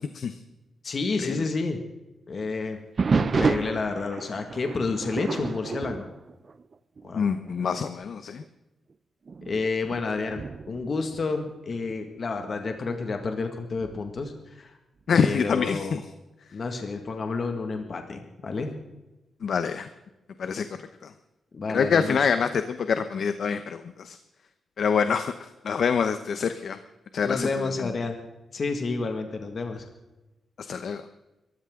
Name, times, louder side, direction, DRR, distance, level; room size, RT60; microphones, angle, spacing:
voice 1, 0.8-1.8 2.3-2.8 3.1-6.1 7.0-7.3 9.5-14.7 15.1-16.0 16.5-18.7 21.5-22.2 27.2-28.2 28.5-29.8, left 4 dB, 45° left, 5 dB, 1.8 m, -30 dB
sound 1, 3.0-7.1 7.4-7.8 8.4-8.5 9.3-12.0 13.8-14.3, right 5 dB, 40° right, 0.6 m, -30 dB
voice 2, 7.1-8.4 15.1-16.0 19.4-19.9 20.4-20.6 21.0-21.1 21.7-24.2 24.8-26.8 27.1-27.9 30.6-31.0, left 6 dB, 60° left, 10 dB, 0.9 m, -26 dB
23.0 x 14.5 x 3.8 m, 1.0 s
wide cardioid pair, 125°, 0 cm